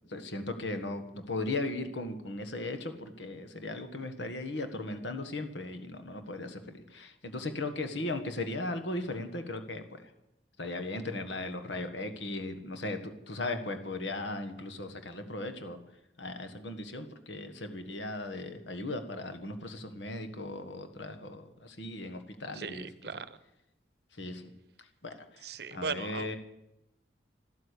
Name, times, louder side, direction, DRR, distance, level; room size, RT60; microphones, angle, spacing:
voice 1, 0.1-10.1 10.6-15.8 16.2-23.2 24.1-24.5 24.8-26.4, left 2 dB, 85° left, 8 dB, 1.6 m, -37 dB
voice 2, 25.5-26.4, right 5 dB, 60° right, 15 dB, 0.8 m, -37 dB
13.0 x 13.0 x 8.4 m, 0.89 s
head